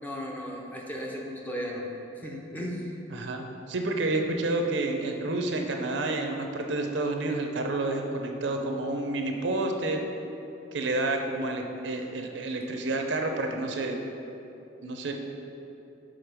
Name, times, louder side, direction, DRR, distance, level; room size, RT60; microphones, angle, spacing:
voice 1, 0.0-1.9 2.2-2.9, equal, 10° left, -2 dB, 0.7 m, -35 dB
voice 2, 3.1-10.0 10.7-14.0 14.8-15.1, right 2 dB, 75° right, 4 dB, 0.6 m, -29 dB
5.1 x 5.1 x 6.0 m, 2.9 s
head